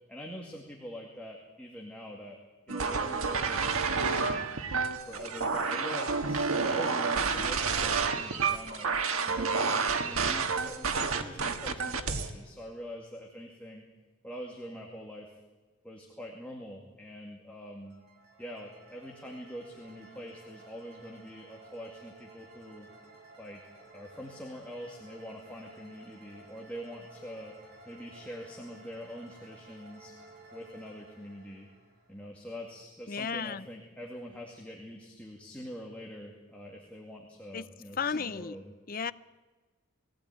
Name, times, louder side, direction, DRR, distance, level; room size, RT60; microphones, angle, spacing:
voice 1, 0.1-2.4 2.7-4.5 5.1-8.9 9.2-13.8 14.2-15.3 15.8-18.0 18.4-22.9 23.4-23.6 23.9-27.5 27.9-30.1 30.5-31.7 32.1-38.7, equal, 5° left, 2.3 m, -44 dB
sound 1, 2.7-12.3, right 5 dB, 80° right, 1.6 m, -29 dB
sound 2, 17.9-32.7, right 2 dB, 50° right, 5.0 m, -54 dB
voice 2, 33.1-33.7 37.5-37.7 38.0-38.6 38.9-39.1, left 6 dB, 40° left, 0.6 m, -33 dB
21.0 x 16.5 x 9.3 m
head